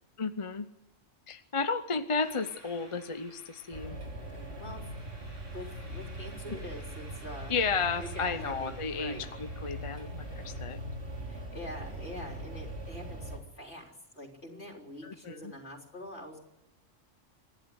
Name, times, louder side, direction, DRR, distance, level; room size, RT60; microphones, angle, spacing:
voice 1, 0.2-0.7 1.3-4.0 7.5-10.8 15.0-15.5, left 4 dB, 30° left, 10 dB, 0.8 m, -33 dB
sound 1, 2.2-10.6, right 1 dB, 75° right, 6.4 m, -54 dB
sound 2, 3.7-13.4, right 1 dB, 60° right, 3.1 m, -41 dB
voice 2, 4.3-4.9 5.5-7.5 8.0-9.2 11.3-16.4, equal, 55° left, 1 dB, 4.1 m, -45 dB
26.5 x 11.5 x 9.7 m, 0.94 s
omnidirectional pair, 1.3 m